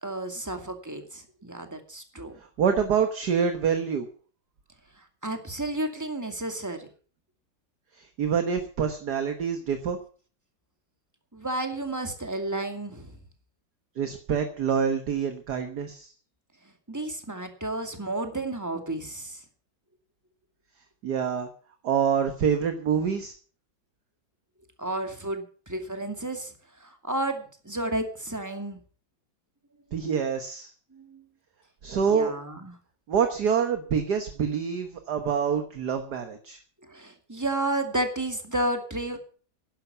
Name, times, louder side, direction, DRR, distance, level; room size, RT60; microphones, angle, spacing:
voice 1, 0.0-2.4 5.0-6.9 11.3-13.2 16.9-19.4 24.8-26.5 26.8-28.8 30.9-31.2 32.0-32.7 36.8-39.2, right 1 dB, 10° right, 5 dB, 2.2 m, -32 dB
voice 2, 2.6-4.1 8.0-10.0 14.0-16.1 21.0-21.5 21.8-23.3 29.9-30.7 31.8-32.3 33.1-36.6, right 7 dB, 55° right, 7 dB, 1.8 m, -26 dB
11.5 x 11.5 x 6.9 m, 0.41 s
omnidirectional pair, 2.2 m